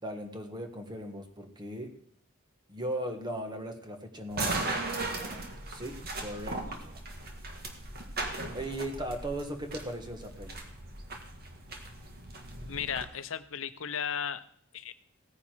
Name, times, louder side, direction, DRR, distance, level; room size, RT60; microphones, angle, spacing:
voice 1, 0.0-2.0 2.7-7.0 8.5-10.6, right 1 dB, 20° right, 5 dB, 1.6 m, -38 dB
sound 1, 4.3-13.0, right 2 dB, 50° right, 1.9 m, -38 dB
voice 2, 12.7-14.4 14.7-14.9, left 8 dB, 70° left, 12 dB, 0.8 m, -35 dB
16.5 x 9.8 x 4.6 m, 0.64 s
head